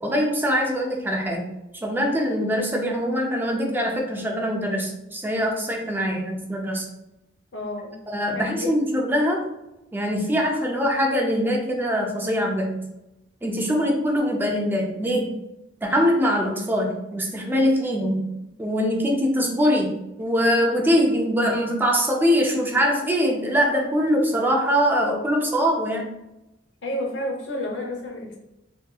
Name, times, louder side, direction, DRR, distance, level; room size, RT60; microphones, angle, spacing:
voice 1, 0.0-1.5 1.8-6.9 8.1-9.4 9.9-12.8 13.4-15.3 15.8-18.3 18.6-26.1, equal, 10° right, 0 dB, 0.4 m, -23 dB
voice 2, 7.5-7.9 8.3-8.7 26.8-28.4, left 1 dB, 80° left, 0 dB, 0.8 m, -30 dB
3.4 x 2.8 x 2.3 m, 0.92 s
head